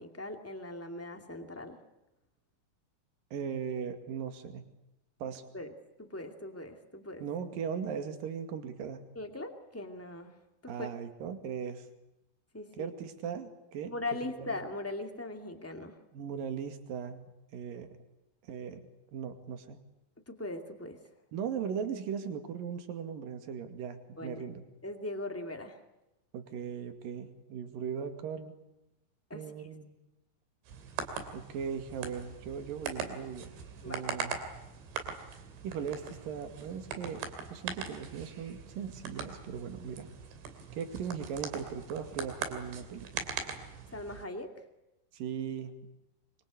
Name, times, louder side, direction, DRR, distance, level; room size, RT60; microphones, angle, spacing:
voice 1, 0.0-1.8 5.5-5.7 6.0-7.2 9.1-10.3 10.6-10.9 12.5-12.9 13.9-16.0 20.3-21.0 24.2-24.5 24.8-25.8 29.3-29.7 33.8-34.0 43.9-44.5, left 2 dB, 10° left, 4 dB, 0.7 m, -40 dB
voice 2, 3.3-4.7 5.2-5.5 7.2-9.0 10.7-11.9 12.7-13.9 14.4-14.6 16.1-17.3 17.5-17.9 18.5-18.8 19.1-19.8 21.3-24.6 26.3-28.5 29.3-29.9 31.3-33.6 33.8-34.4 35.6-40.1 40.8-43.3 45.1-45.8, right 7 dB, 55° right, 8 dB, 3.7 m, -38 dB
sound 1, 30.7-44.2, right 6 dB, 80° right, 5.1 m, -41 dB
25.5 x 24.5 x 8.4 m, 0.93 s
omnidirectional pair, 5.1 m